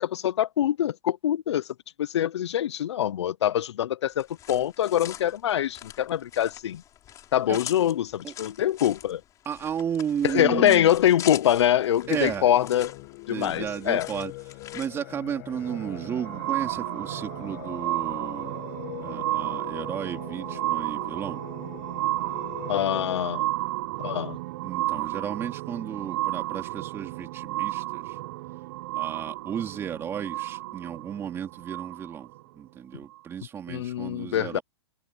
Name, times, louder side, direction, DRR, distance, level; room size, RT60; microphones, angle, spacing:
voice 1, 0.0-1.6 2.0-6.8 7.3-9.2 10.2-12.9 13.3-14.1 22.7-23.4 24.0-24.4 33.7-34.6, left 11 dB, 80° left, 0.6 m, -24 dB
sound 1, 4.1-14.9, left 12 dB, 25° left, 7.2 m, -43 dB
voice 2, 9.5-10.9 12.1-12.5 13.3-14.3 14.7-18.7 19.0-21.4 24.6-28.2 28.9-34.6, right 8 dB, 15° right, 3.6 m, -33 dB
sound 2, 11.9-23.2, left 22 dB, 40° left, 1.4 m, -42 dB
sound 3, 15.5-32.4 33.1-33.2, right 18 dB, 45° right, 0.9 m, -32 dB
hypercardioid pair, 155°, 14 cm